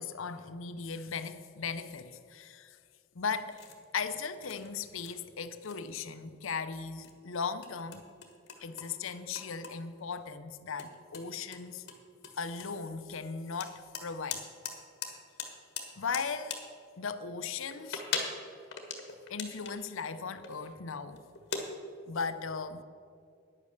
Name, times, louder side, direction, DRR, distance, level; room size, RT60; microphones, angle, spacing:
voice 1, 0.0-2.8 3.1-3.6 3.9-8.0 8.6-11.9 12.3-14.5 16.0-16.6 17.0-18.0 19.3-21.2 22.1-22.8, left 5 dB, 70° left, 11 dB, 0.6 m, -37 dB
sound 1, 3.3-3.8 4.4-5.3 5.6-6.2 6.5-6.7 7.0-9.8 10.1-10.3 10.8-10.9 11.1-12.9 13.6-14.8 15.0-15.1 15.4-16.6 17.5-19.8 20.4-20.7 21.2-21.6, left 6 dB, 50° left, 1.4 m, -40 dB
10.0 x 8.7 x 6.5 m, 2.3 s
head